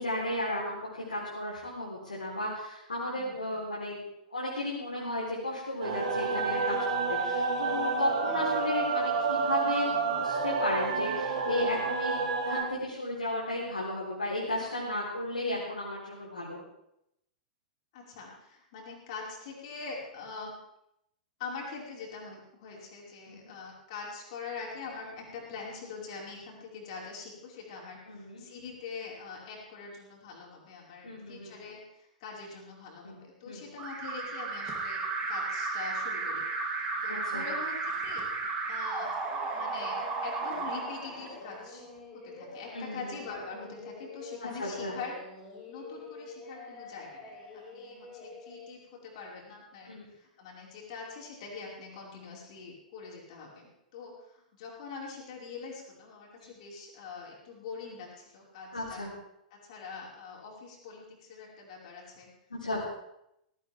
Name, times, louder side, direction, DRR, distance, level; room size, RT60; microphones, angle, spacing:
voice 1, 0.0-4.0 4.3-6.8 7.1-12.2 12.4-16.6 23.3-23.5 28.1-28.4 31.0-31.5 33.0-33.2 33.5-33.6 37.1-37.4 42.7-43.2 44.6-44.9 49.9-50.0 56.4-56.5 58.7-59.1 62.5-62.8, left 1 dB, 75° left, -5 dB, 4.0 m, -34 dB
voice 2, 3.0-3.7 8.2-8.5 17.9-20.5 21.4-36.7 37.0-41.9 42.1-45.2 45.7-59.1 59.5-62.3 62.7-62.8, left 4 dB, 45° left, -3 dB, 5.3 m, -44 dB
sound 1, 5.8-12.6, right 4 dB, 55° right, 2.7 m, -29 dB
Alarm, 33.8-41.7, right 3 dB, 25° right, 3.0 m, -34 dB
Singing, 39.2-48.7, left 3 dB, 30° left, 6.9 m, -47 dB
17.5 x 17.0 x 3.6 m, 0.81 s
figure-of-eight pair, 100°, 4 cm